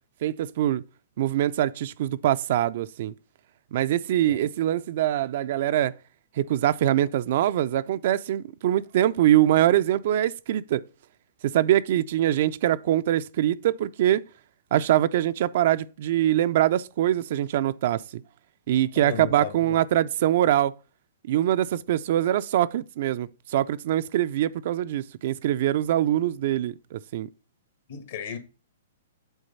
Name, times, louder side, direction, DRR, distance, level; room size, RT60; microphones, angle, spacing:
voice 1, 0.2-0.8 1.2-3.1 3.7-5.9 6.4-10.8 11.4-14.2 14.7-18.2 18.7-20.7 21.3-27.3, right 12 dB, 55° right, 0.4 m, -23 dB
voice 2, 18.9-19.8 27.9-28.4, left 7 dB, 60° left, 1.7 m, -35 dB
8.1 x 3.9 x 5.4 m
hypercardioid pair, 125°, 0 cm